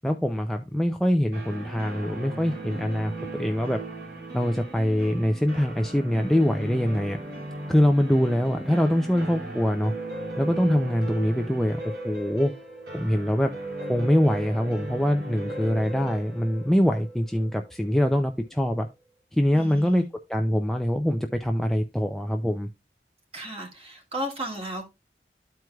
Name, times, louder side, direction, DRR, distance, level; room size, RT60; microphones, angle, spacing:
voice 1, 0.0-3.8 4.3-7.2 7.7-9.9 10.4-12.5 12.9-13.5 13.9-18.9 19.3-20.0 20.3-22.7, equal, ahead, 4 dB, 0.4 m, -24 dB
sound 1, 1.3-18.0, right 2 dB, 75° right, 3.1 m, -36 dB
voice 2, 19.5-20.1 23.3-24.9, right 1 dB, 35° right, 2 dB, 1.7 m, -34 dB
13.0 x 4.6 x 2.3 m, 0.24 s
head